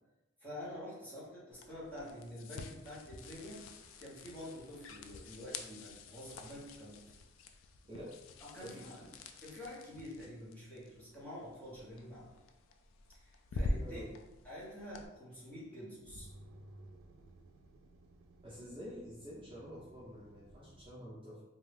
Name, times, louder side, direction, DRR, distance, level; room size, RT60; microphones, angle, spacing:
voice 1, 0.4-3.6 4.0-7.0 8.4-9.0 9.4-12.3 13.1-14.0 14.4-16.3, left 1 dB, 10° left, -8 dB, 0.9 m, -48 dB
sound 1, 1.5-15.1, left 2 dB, 70° left, 0.3 m, -46 dB
voice 2, 7.8-8.2 8.6-9.1 13.8-14.2 18.4-21.4, equal, 25° right, -8 dB, 0.6 m, -48 dB
sound 2, 15.3-20.9, right 1 dB, 80° right, 0.4 m, -57 dB
2.6 x 2.3 x 3.3 m, 1.0 s
head